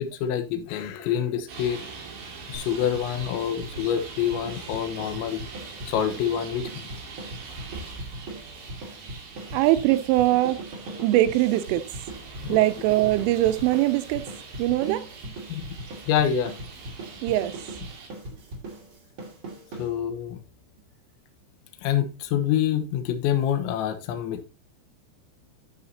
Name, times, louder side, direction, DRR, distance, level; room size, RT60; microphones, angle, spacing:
voice 1, 0.0-1.8 2.5-5.4 5.9-6.9 12.4-12.6 15.5-15.7 16.1-16.5 19.8-20.4 21.8-24.5, left 9 dB, 75° left, 3.2 m, -26 dB
Traffic noise roadway noise, 1.5-18.1, right 4 dB, 65° right, 4.4 m, -42 dB
sound 1, 2.5-20.3, right 1 dB, 40° right, 2.0 m, -40 dB
voice 2, 9.5-10.6 11.0-11.9 12.4-14.3 14.6-15.3 17.2-17.5, right 15 dB, 85° right, 3.1 m, -22 dB
12.5 x 5.7 x 2.8 m
omnidirectional pair, 5.6 m